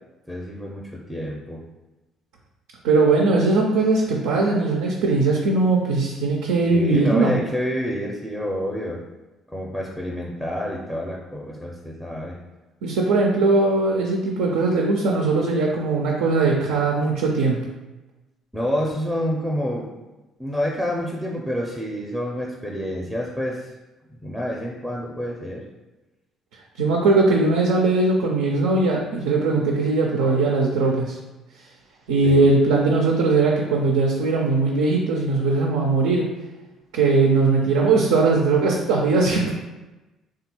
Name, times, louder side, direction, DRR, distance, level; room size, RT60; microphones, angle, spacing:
voice 1, 0.3-1.6 6.7-9.0 9.5-12.4 18.5-19.9 20.4-23.7 24.2-25.6 32.2-32.4, equal, ahead, -2 dB, 0.5 m, -28 dB
voice 2, 2.8-7.4 12.8-17.6 26.8-31.2 32.1-36.3 36.9-39.5, right 3 dB, 80° right, -1 dB, 0.4 m, -20 dB
3.3 x 2.3 x 2.9 m, 1.1 s
hypercardioid pair, 55°, 0 cm